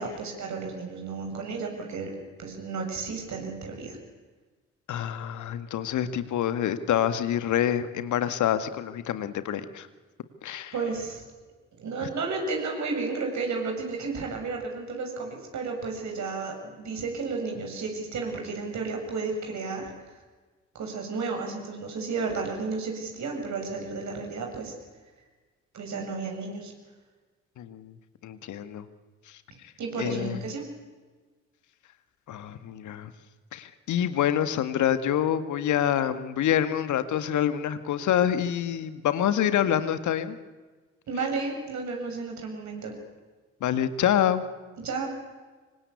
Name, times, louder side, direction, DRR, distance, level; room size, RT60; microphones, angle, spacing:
voice 1, 0.0-2.1 2.4-4.0 10.7-11.2 11.8-19.9 20.7-24.7 25.7-26.7 29.8-30.7 41.1-42.9 44.8-45.1, right 4 dB, 50° right, 2 dB, 7.5 m, -32 dB
voice 2, 4.9-9.9 10.4-10.7 27.6-27.9 28.2-28.9 30.0-30.4 32.3-33.1 33.5-40.4 43.6-44.4, left 10 dB, 55° left, 12 dB, 1.9 m, -26 dB
26.5 x 24.5 x 8.6 m, 1.3 s
figure-of-eight pair, 45°, 36 cm